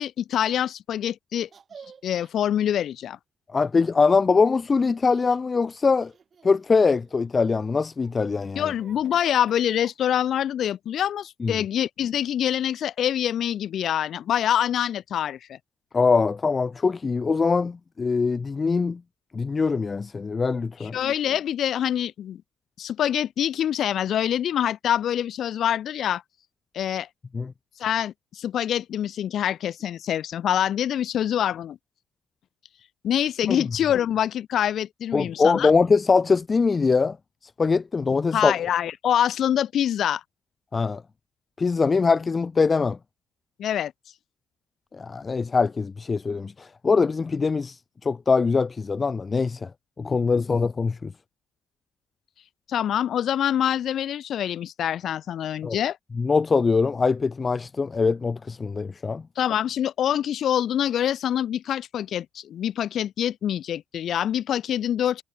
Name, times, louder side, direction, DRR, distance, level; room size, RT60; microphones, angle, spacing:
voice 1, 0.0-1.5 2.0-3.2 8.6-15.6 20.8-22.4 22.8-26.2 26.7-27.1 27.8-31.8 33.0-35.7 38.3-40.2 43.6-43.9 52.7-56.0 59.4-65.2, left 10 dB, 55° left, 2.6 m, -25 dB
Laughter, 1.5-2.3 4.8-5.4 6.0-7.3 7.8-10.4, right 6 dB, 40° right, 7.7 m, -51 dB
voice 2, 3.5-6.1 6.4-8.7 11.4-11.5 15.9-19.0 19.3-21.0 27.3-27.5 33.5-33.6 35.1-37.2 37.4-38.5 40.7-41.0 41.6-43.0 44.9-49.7 50.0-51.1 55.6-55.8 56.2-59.2, left 4 dB, 30° left, 0.5 m, -22 dB
figure-of-eight pair, 50°, 0 cm